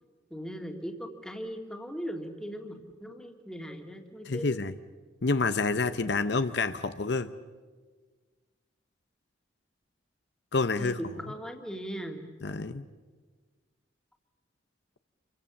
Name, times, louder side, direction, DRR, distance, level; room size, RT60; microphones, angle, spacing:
voice 1, 0.3-4.5 10.8-12.2, equal, 5° left, 3 dB, 2.2 m, -39 dB
voice 2, 4.2-4.7 5.2-7.3 10.5-11.0 12.4-12.8, left 3 dB, 60° left, 11 dB, 0.8 m, -28 dB
29.0 x 23.5 x 7.2 m, 1.4 s
head